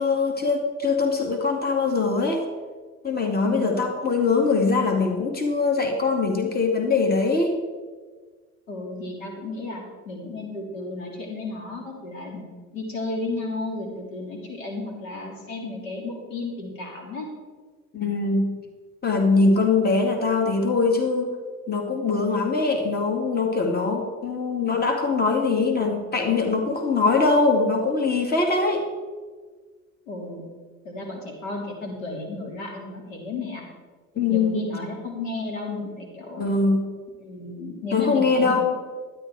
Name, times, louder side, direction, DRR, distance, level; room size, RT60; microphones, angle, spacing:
voice 1, 0.0-2.4 3.0-7.5 17.9-18.6 19.0-21.3 21.7-28.9 34.2-34.6 36.4-36.9 37.9-38.6, left 4 dB, 25° left, 2 dB, 2.3 m, -22 dB
voice 2, 3.4-3.8 8.7-12.4 12.7-17.3 30.1-30.4 30.8-33.6 34.3-36.5 37.2-38.6, left 3 dB, 75° left, 0 dB, 3.2 m, -33 dB
12.5 x 10.5 x 4.8 m, 1.5 s
hypercardioid pair, 75°, 39 cm